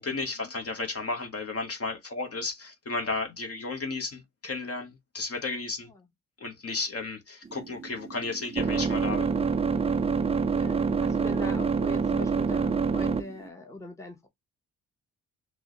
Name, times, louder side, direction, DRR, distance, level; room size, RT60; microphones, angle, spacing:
voice 1, 0.0-5.9 6.4-9.3, left 3 dB, 40° left, 1.3 m, -33 dB
sound 1, 7.5-13.5, right 5 dB, 15° right, 0.4 m, -27 dB
voice 2, 10.4-14.3, left 2 dB, 10° left, 1.0 m, -41 dB
6.0 x 2.2 x 3.1 m
supercardioid pair, 50°, 38 cm